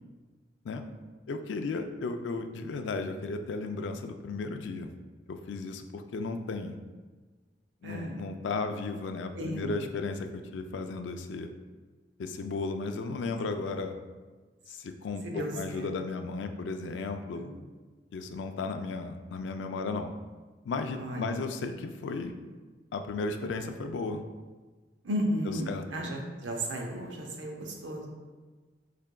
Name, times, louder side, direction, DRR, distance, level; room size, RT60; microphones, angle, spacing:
voice 1, 1.3-4.9 5.3-6.8 7.8-11.5 12.2-13.9 14.7-17.5 18.1-20.1 20.6-22.3 22.9-24.2 25.7-25.8, left 3 dB, 75° left, 7 dB, 0.3 m, -35 dB
voice 2, 7.8-8.2 9.3-9.9 15.2-15.9 17.3-17.5 21.0-21.4 25.0-28.1, equal, 80° right, 0 dB, 0.7 m, -34 dB
4.7 x 3.3 x 2.2 m, 1.4 s
head